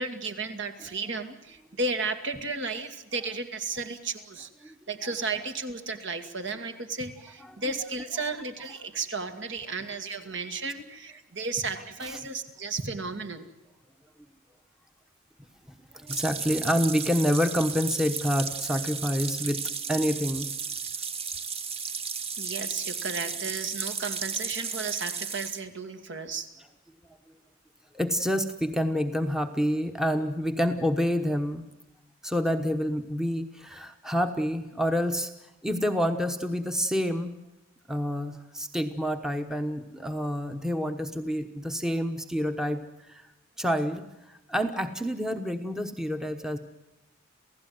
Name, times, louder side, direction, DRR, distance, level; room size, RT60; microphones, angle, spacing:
voice 1, 0.0-13.4 22.4-26.5, right 3 dB, 55° right, 9 dB, 2.1 m, -34 dB
voice 2, 15.9-19.6 19.9-20.5 27.9-31.7 32.2-35.3 35.6-37.3 37.9-42.8 43.1-43.3 43.6-46.6, equal, 5° right, 7 dB, 1.1 m, -28 dB
sound 1, 16.1-25.6, right 6 dB, 30° right, 1.1 m, -34 dB
28.5 x 16.0 x 9.5 m, 0.96 s
head